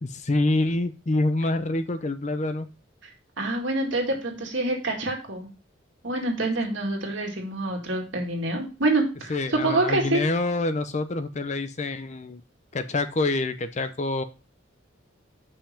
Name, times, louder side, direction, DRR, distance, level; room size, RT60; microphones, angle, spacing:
voice 1, 0.0-2.7 9.3-12.4 12.7-14.2, left 2 dB, 35° left, 10 dB, 0.6 m, -26 dB
voice 2, 3.4-5.5 6.0-10.2, right 2 dB, 70° right, 1 dB, 2.0 m, -26 dB
5.7 x 5.3 x 5.0 m, 0.32 s
head